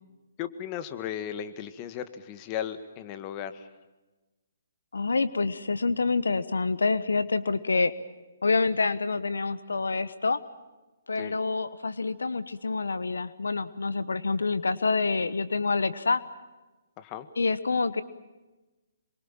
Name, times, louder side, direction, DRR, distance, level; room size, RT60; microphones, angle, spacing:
voice 1, 0.4-3.7 11.2-11.4 17.0-17.3, left 10 dB, 30° left, 11 dB, 1.9 m, -36 dB
voice 2, 4.9-7.9 8.4-10.4 11.1-16.2 17.4-18.0, left 4 dB, 85° left, 15 dB, 1.2 m, -27 dB
27.0 x 23.5 x 7.5 m, 1.1 s
hypercardioid pair, 140°, 0 cm